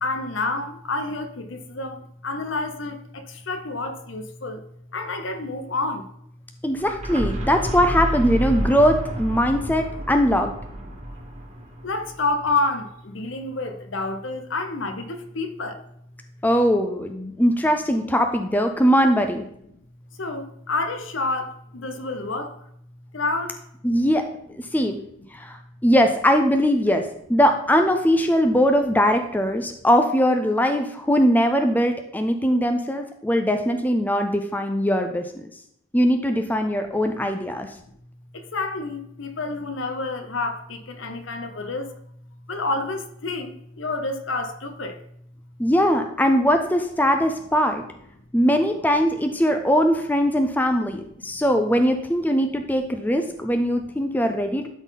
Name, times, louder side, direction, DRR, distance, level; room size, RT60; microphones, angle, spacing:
voice 1, 0.0-4.6 4.9-6.1 11.8-15.8 20.2-22.6 23.1-23.6 38.3-41.9 42.5-45.0 51.3-51.4, left 3 dB, 65° left, 0.9 m, -29 dB
voice 2, 6.6-10.5 16.4-19.4 23.8-24.2 24.6-25.0 25.3-35.5 35.9-37.7 45.6-47.8 48.3-54.7, equal, 10° left, 0.5 m, -21 dB
sound 1, 6.7-12.5, right 1 dB, 35° right, 1.6 m, -30 dB
12.0 x 4.0 x 4.0 m
head